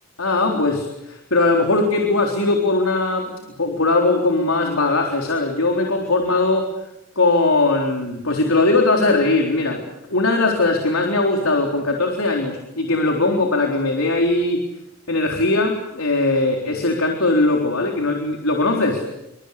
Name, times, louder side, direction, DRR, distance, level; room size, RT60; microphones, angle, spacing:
voice 1, 0.2-6.7 7.2-9.8 10.1-14.6 15.1-19.0, left 2 dB, 85° left, 1 dB, 3.9 m, -20 dB
27.5 x 25.5 x 8.5 m, 0.92 s
head